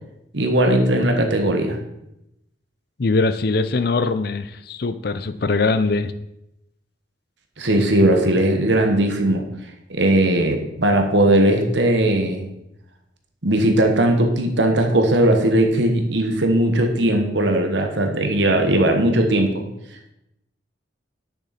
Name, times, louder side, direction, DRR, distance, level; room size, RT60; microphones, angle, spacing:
voice 1, 0.3-1.8 7.6-9.4 9.9-12.5 13.4-19.6, right 1 dB, 65° right, 4 dB, 1.3 m, -18 dB
voice 2, 3.0-6.1, left 3 dB, 50° left, 12 dB, 0.5 m, -21 dB
10.0 x 6.3 x 4.3 m, 0.85 s
head